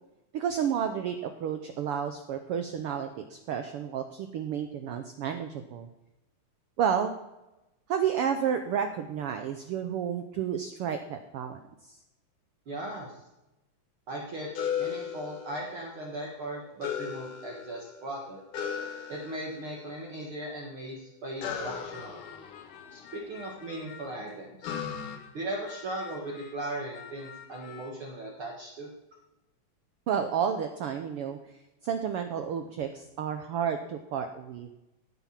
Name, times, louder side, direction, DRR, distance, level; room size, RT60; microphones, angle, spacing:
voice 1, 0.3-5.9 6.8-7.1 7.9-12.0 30.1-31.4 31.8-34.7, right 8 dB, 80° right, 7 dB, 1.3 m, -31 dB
voice 2, 12.7-13.2 14.1-14.5 14.8-18.4 19.1-22.2 22.9-24.7 25.3-28.9, right 1 dB, 50° right, -2 dB, 2.3 m, -38 dB
sound 1, 14.5-16.0 16.8-18.0 18.5-19.8 21.4-23.5 24.6-25.2, left 8 dB, 90° left, 3.0 m, -36 dB
sound 2, 21.7-24.4 24.6-26.7 26.9-27.9, left 8 dB, 70° left, 1.5 m, -50 dB
17.0 x 8.1 x 5.9 m, 0.98 s
omnidirectional pair, 3.5 m